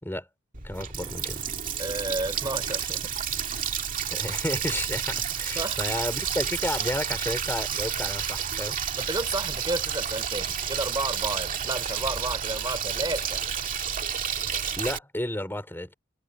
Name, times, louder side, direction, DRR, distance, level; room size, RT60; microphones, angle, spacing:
Water tap faucet, 0.5-15.0, right 8 dB, 40° right, 2.2 m, -30 dB
voice 1, 0.6-1.4 4.1-8.8 14.8-15.9, left 1 dB, 10° left, 4.7 m, -32 dB
voice 2, 1.8-3.1 5.5-5.8 8.9-13.4, right 2 dB, 20° right, 4.5 m, -32 dB
head